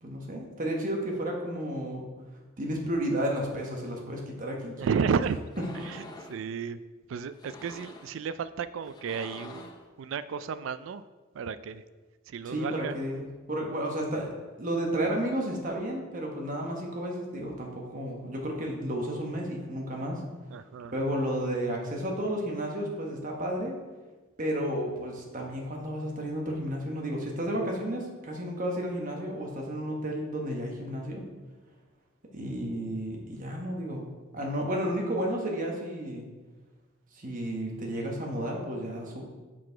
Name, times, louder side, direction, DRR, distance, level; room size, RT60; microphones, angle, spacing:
voice 1, 0.0-2.1 2.6-4.9 12.5-14.3 14.6-20.2 20.9-23.8 24.4-31.2 32.3-34.1 34.3-36.3 37.1-39.2, right 1 dB, 40° right, 0 dB, 1.2 m, -32 dB
voice 2, 4.8-5.4 5.7-6.8 7.1-11.0 11.3-11.8 12.3-13.0 20.5-20.9, right 6 dB, 70° right, 14 dB, 0.3 m, -32 dB
sound 1, 5.5-6.4 7.3-8.2 8.8-9.9, left 2 dB, 20° left, 0.6 m, -46 dB
6.1 x 4.7 x 4.5 m, 1.3 s
head